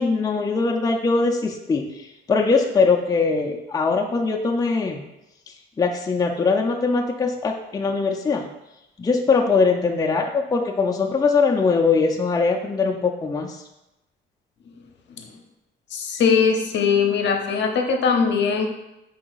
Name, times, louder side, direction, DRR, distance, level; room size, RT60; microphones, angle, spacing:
voice 1, 0.0-1.8 2.3-5.0 5.8-8.5 9.0-13.6, left 4 dB, 20° left, 1 dB, 0.5 m, -21 dB
voice 2, 15.9-18.7, left 6 dB, 65° left, 3 dB, 0.7 m, -20 dB
4.7 x 2.8 x 4.0 m, 0.91 s
cardioid pair, 90°, 20 cm